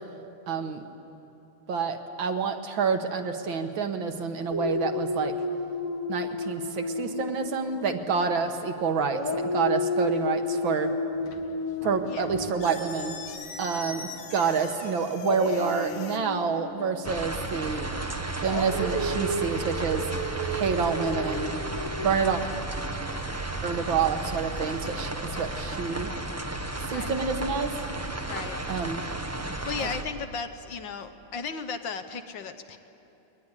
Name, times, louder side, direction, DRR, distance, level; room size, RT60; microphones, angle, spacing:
voice 1, 0.5-0.8 1.7-5.3 6.1-10.9 11.8-13.2 13.6-17.9 18.4-20.1 20.4-21.6 22.0-22.4 23.6-25.1 25.4-26.1 26.9-27.7 28.7-29.0 29.8-29.9, right 5 dB, 70° right, 6 dB, 2.0 m, -28 dB
Dog, 4.5-8.7 9.1-14.1 15.2-22.1, left 1 dB, 20° left, 1.4 m, -33 dB
sound 1, 11.1-16.2, left 4 dB, 80° left, 2.4 m, -43 dB
sound 2, 17.0-30.0, right 2 dB, 20° right, 0.4 m, -33 dB
voice 2, 26.8-27.2 28.3-28.6 29.6-32.8, left 5 dB, 65° left, 8 dB, 1.6 m, -35 dB
21.5 x 19.5 x 9.8 m, 2.9 s
omnidirectional pair, 2.3 m